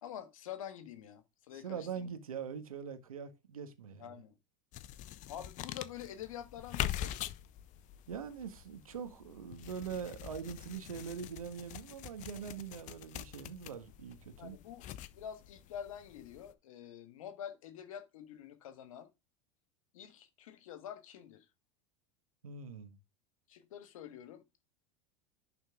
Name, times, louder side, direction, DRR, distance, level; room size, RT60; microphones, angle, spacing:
voice 1, 0.0-2.1 4.0-4.3 5.3-7.2 14.4-14.9 15.1-19.1 19.9-21.4 23.5-24.6, left 9 dB, 75° left, 1.5 m, -47 dB
voice 2, 1.6-4.1 8.1-14.6 22.4-23.0, right 7 dB, 85° right, 1.6 m, -43 dB
sound 1, 4.7-16.5, left 12 dB, 45° left, 0.8 m, -44 dB
11.0 x 4.4 x 3.6 m
hypercardioid pair, 85°, 18 cm